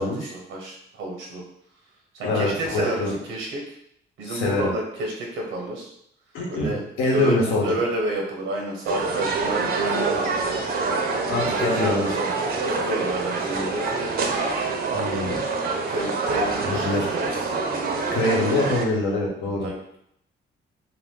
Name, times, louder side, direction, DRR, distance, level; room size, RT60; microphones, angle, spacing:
voice 1, 0.0-1.4 2.1-3.7 4.2-5.9 6.5-6.8 7.1-7.4 7.6-10.7 11.4-12.4 12.6-14.2 15.9-17.3 19.4-20.0, right 1 dB, 90° right, 0 dB, 0.9 m, -30 dB
voice 2, 2.2-3.1 4.3-4.7 6.3-6.7 7.0-7.7 11.3-12.1 14.9-15.4 16.6-17.1 18.1-19.7, left 2 dB, 80° left, -2 dB, 1.0 m, -24 dB
sound 1, 8.8-18.8, right 4 dB, 50° right, 0.5 m, -26 dB
2.6 x 2.4 x 3.6 m, 0.73 s
cardioid pair, 90°, 20 cm